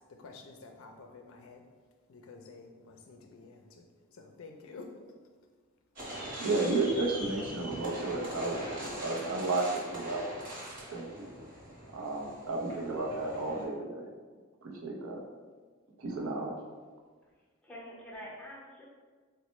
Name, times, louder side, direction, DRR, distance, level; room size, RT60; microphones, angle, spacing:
voice 1, 0.2-1.6 2.1-3.8 4.2-4.9, left 4 dB, 70° left, 4 dB, 0.4 m, -50 dB
sound 1, 5.9-13.6, equal, 40° right, 1.1 m, -42 dB
voice 2, 6.4-10.6 10.9-11.3 11.9-14.1 14.6-15.2 16.0-16.6, right 2 dB, 70° right, 0 dB, 0.6 m, -33 dB
voice 3, 7.3-7.7 17.6-18.9, equal, 5° left, -6 dB, 0.6 m, -47 dB
4.1 x 2.1 x 3.0 m, 1.5 s
head